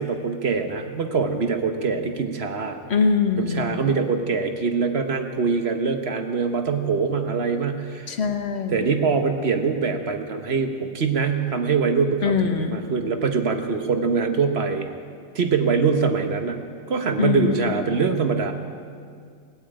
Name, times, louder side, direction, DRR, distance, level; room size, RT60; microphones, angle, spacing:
voice 1, 0.0-2.8 3.4-8.1 8.7-14.9 15.3-16.6 16.9-18.5, right 5 dB, 45° right, 6 dB, 1.0 m, -23 dB
voice 2, 2.9-3.7 8.1-8.9 12.2-12.8 17.2-17.8, left 5 dB, 45° left, 6 dB, 1.0 m, -23 dB
19.0 x 8.8 x 8.7 m, 2.2 s
omnidirectional pair, 2.0 m